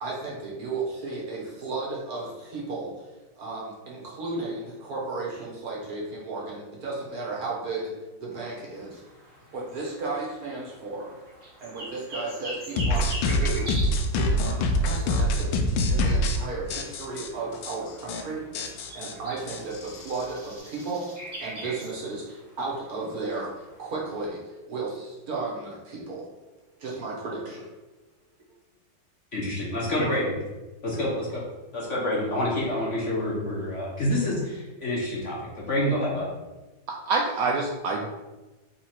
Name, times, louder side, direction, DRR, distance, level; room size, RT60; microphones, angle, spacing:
voice 1, 0.0-2.9 3.4-7.9 8.2-9.0 9.5-11.1 11.6-15.6 15.9-18.7 18.9-21.1 21.4-26.2 26.8-27.7, right 3 dB, 55° right, -4 dB, 1.4 m, -34 dB
sound 1, 8.7-24.2, right 1 dB, 25° right, 1.2 m, -44 dB
sound 2, 12.8-16.4 16.7-17.3 17.6-17.7 18.0-18.2 18.5-20.2, left 1 dB, 75° left, 1.2 m, -25 dB
voice 2, 29.3-30.2 30.8-31.4 31.7-36.3, left 1 dB, 55° left, -5 dB, 0.9 m, -27 dB
voice 3, 36.9-38.1, right 3 dB, 90° right, 0 dB, 0.7 m, -26 dB
3.8 x 3.1 x 4.3 m, 1.1 s
omnidirectional pair, 2.1 m